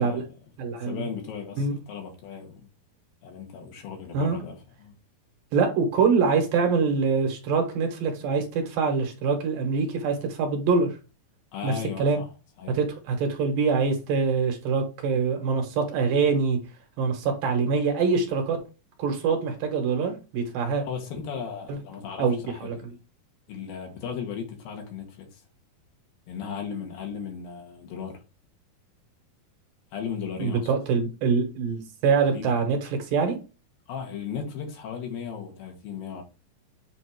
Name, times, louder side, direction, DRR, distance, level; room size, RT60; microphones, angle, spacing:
voice 1, 0.0-0.4 0.7-2.7 3.2-5.0 11.5-12.3 12.6-12.8 20.9-22.7 23.5-25.4 26.3-28.2 29.9-30.7 32.3-32.6 33.9-36.2, left 7 dB, 70° left, 2.9 m, -36 dB
voice 2, 0.6-1.0 1.6-1.8 4.1-4.4 5.5-11.0 11.6-11.7 12.0-12.2 12.7-16.6 17.0-18.6 19.0-20.8 22.2-22.4 22.6-22.7 30.4-32.8 33.1-33.4, right 5 dB, 70° right, 2.7 m, -24 dB
8.0 x 2.7 x 4.5 m
omnidirectional pair, 4.5 m